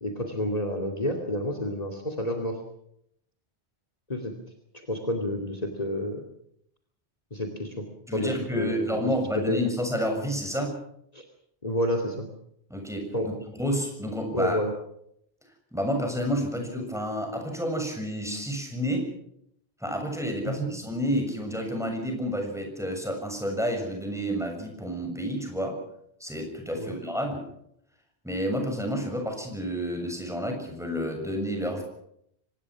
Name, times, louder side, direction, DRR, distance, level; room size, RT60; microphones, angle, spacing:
voice 1, 0.0-2.6 4.1-4.3 4.9-6.2 7.3-7.9 8.1-9.1 9.5-9.6 11.1-11.2 11.6-12.3 13.1-13.3 14.3-14.7 20.4-20.8 26.7-27.0, left 1 dB, 35° left, 5 dB, 2.7 m, -29 dB
voice 2, 8.1-10.8 12.7-13.1 13.5-14.6 15.7-19.1 19.8-25.8 26.2-27.4 28.2-31.8, equal, 5° right, 3 dB, 6.9 m, -30 dB
25.0 x 20.0 x 6.2 m, 0.73 s
omnidirectional pair, 1.1 m